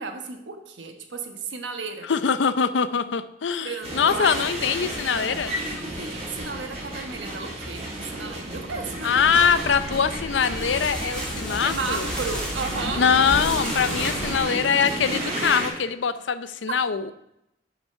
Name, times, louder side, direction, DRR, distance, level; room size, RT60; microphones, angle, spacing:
voice 1, 0.0-2.1 3.6-4.3 5.7-9.4 11.6-13.1 16.7-16.8, right 4 dB, 85° right, 4 dB, 1.2 m, -34 dB
voice 2, 2.1-5.6 9.0-12.1 12.9-17.1, left 6 dB, 85° left, 13 dB, 0.5 m, -23 dB
sound 1, 3.8-15.7, right 1 dB, 35° right, 3.5 m, -33 dB
sound 2, 8.7-14.1, left 2 dB, 45° left, 0.7 m, -46 dB
sound 3, 9.2-14.4, equal, 5° left, 2.4 m, -33 dB
7.7 x 5.9 x 5.6 m, 0.83 s
head